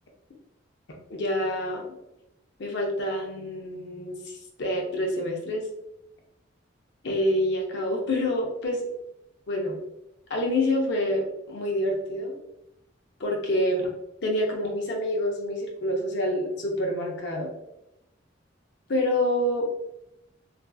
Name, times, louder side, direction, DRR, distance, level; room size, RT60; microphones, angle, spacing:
voice 1, 1.1-1.8 2.6-5.6 7.0-8.8 9.5-9.8 10.3-12.4 13.2-13.9 14.2-17.5 18.9-19.8, left 1 dB, 60° left, 1 dB, 0.6 m, -27 dB
2.5 x 2.4 x 2.3 m, 0.87 s
head